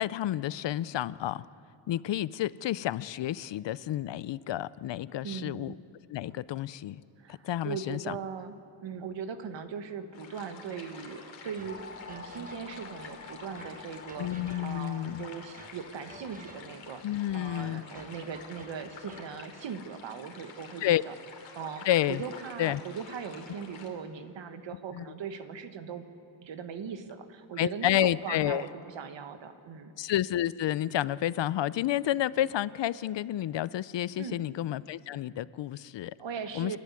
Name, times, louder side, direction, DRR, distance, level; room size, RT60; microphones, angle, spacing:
voice 1, 0.0-1.5 1.9-5.8 6.1-7.0 7.4-8.2 14.2-15.3 17.0-17.8 20.8-21.0 21.8-22.2 22.6-22.8 24.9-25.0 27.6-28.6 30.0-36.1 36.5-36.8, left 12 dB, 70° left, 19 dB, 0.6 m, -30 dB
voice 2, 5.2-5.7 7.2-8.5 8.8-11.8 12.1-14.3 14.6-17.0 17.3-21.1 21.5-26.0 26.4-29.9 34.2-34.5 36.2-36.8, right 6 dB, 75° right, 9 dB, 1.5 m, -39 dB
sound 1, 10.1-23.9, left 5 dB, 90° left, 2.9 m, -49 dB
sound 2, 11.6-13.0 13.6-15.0 15.6-16.9 17.6-19.4, right 3 dB, 20° right, 1.1 m, -52 dB
sound 3, 11.7-17.4, left 4 dB, 35° left, 1.1 m, -49 dB
28.5 x 12.0 x 9.7 m, 2.5 s
wide cardioid pair, 155°, 45 cm